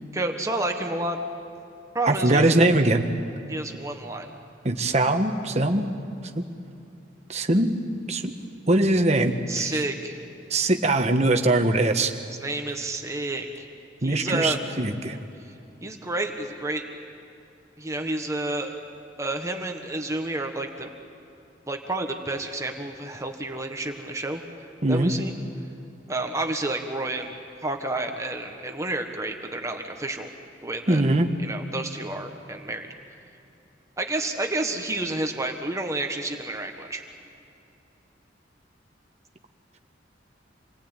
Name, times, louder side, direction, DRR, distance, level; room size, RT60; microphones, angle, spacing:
voice 1, 0.1-1.2 1.9-2.5 3.5-4.3 9.5-10.2 12.4-13.5 14.0-14.6 15.4-15.5 15.8-16.8 17.8-18.8 19.2-20.9 21.7-24.4 24.9-25.3 26.1-30.3 30.6-31.0 31.4-32.9 34.0-37.0, right 2 dB, 15° right, 4 dB, 1.4 m, -30 dB
voice 2, 2.0-3.1 4.6-5.9 6.4-6.5 7.3-7.8 8.1-8.3 8.7-9.8 10.5-12.1 14.0-15.2 24.8-25.1 30.9-31.3, right 2 dB, 35° right, 6 dB, 1.4 m, -22 dB
27.5 x 19.5 x 9.1 m, 2.7 s
head